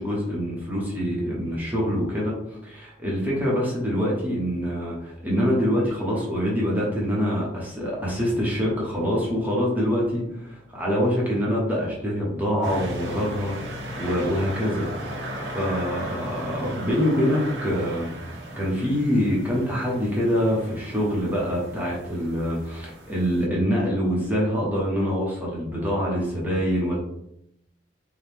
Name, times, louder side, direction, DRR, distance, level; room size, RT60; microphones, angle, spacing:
voice 1, 0.0-2.4 2.6-18.1 18.6-27.0, equal, 10° right, -5 dB, 1.0 m, -25 dB
sound 1, 12.6-23.5, right 1 dB, 75° right, 1.1 m, -37 dB
4.7 x 2.3 x 3.5 m, 0.77 s
head